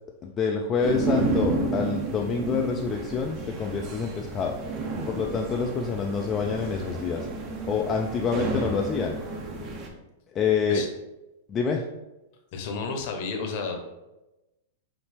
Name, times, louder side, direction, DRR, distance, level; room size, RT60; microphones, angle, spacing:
voice 1, 0.2-4.6 5.1-7.3 7.7-9.2 10.3-10.9 11.5-11.8, left 5 dB, 25° left, 1 dB, 0.3 m, -27 dB
sound 1, 0.8-9.9, right 3 dB, 35° right, 0.8 m, -31 dB
voice 2, 12.5-13.9, left 4 dB, 50° left, 4 dB, 0.8 m, -31 dB
5.3 x 2.8 x 3.3 m, 0.99 s
hypercardioid pair, 140°, 0 cm